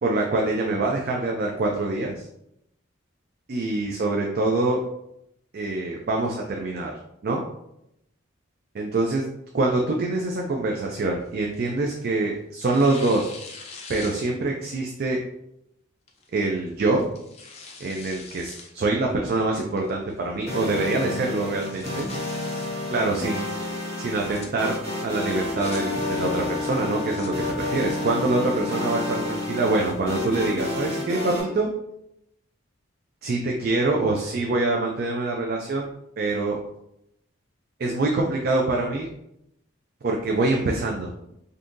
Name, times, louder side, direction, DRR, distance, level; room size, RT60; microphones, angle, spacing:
voice 1, 0.0-2.3 3.5-4.8 5.5-7.0 7.2-7.4 8.7-9.3 9.5-13.3 13.9-15.2 16.3-17.0 17.8-22.1 22.9-24.8 25.0-31.7 33.2-35.9 36.2-36.6 37.8-39.1 40.0-41.1, right 2 dB, 50° right, 0 dB, 0.4 m, -25 dB
Tearing, 10.8-12.1 12.6-14.6 15.1-15.2 16.1-16.4 16.9-18.7 19.1-19.2 19.8-20.2 20.5-20.6 20.9-21.0 21.4-22.7 24.0-24.5 25.3-25.8 26.8-27.3, left 4 dB, 30° left, 0.5 m, -43 dB
sound 1, 20.5-31.4, left 1 dB, 30° right, 1.3 m, -31 dB
Wind instrument woodwind instrument, 25.5-29.7, left 3 dB, 85° left, 0.7 m, -32 dB
3.6 x 2.7 x 2.5 m, 0.80 s
head